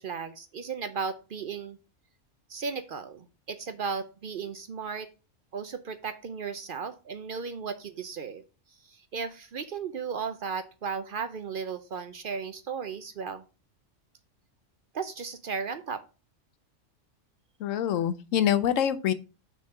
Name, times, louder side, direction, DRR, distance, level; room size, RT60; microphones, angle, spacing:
voice 1, 0.0-1.8 2.5-5.1 5.5-8.4 8.8-13.4 14.9-16.0, right 5 dB, 55° right, 10 dB, 0.6 m, -35 dB
voice 2, 17.6-19.1, left 9 dB, 85° left, 13 dB, 1.0 m, -25 dB
6.2 x 3.7 x 5.6 m, 0.32 s
omnidirectional pair, 1.3 m